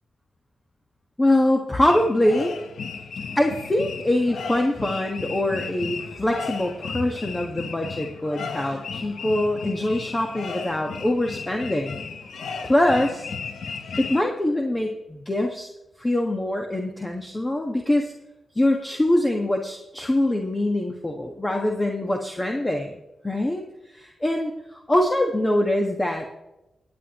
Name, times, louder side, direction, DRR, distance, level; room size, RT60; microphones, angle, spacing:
voice 1, 1.2-2.5 3.3-12.0 12.6-13.3 14.0-15.7 16.0-18.1 18.5-22.9 23.2-26.3, left 1 dB, 25° left, 2 dB, 1.5 m, -23 dB
sound 1, 1.9-14.2, left 5 dB, 75° left, 1.0 m, -35 dB
19.0 x 8.8 x 3.1 m, 0.96 s
cardioid pair, 50°, 0 cm